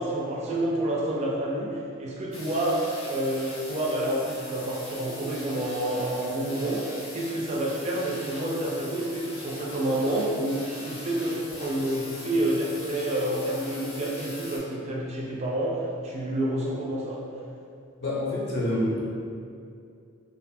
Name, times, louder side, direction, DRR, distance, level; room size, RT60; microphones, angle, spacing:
voice 1, 0.0-6.8 7.1-17.2, right 1 dB, 30° right, -4 dB, 0.4 m, -28 dB
sound 1, 2.3-14.6, left 1 dB, 90° left, 0.6 m, -42 dB
voice 2, 18.0-19.1, left 1 dB, 55° left, -6 dB, 0.6 m, -27 dB
2.5 x 2.3 x 2.6 m, 2.5 s
head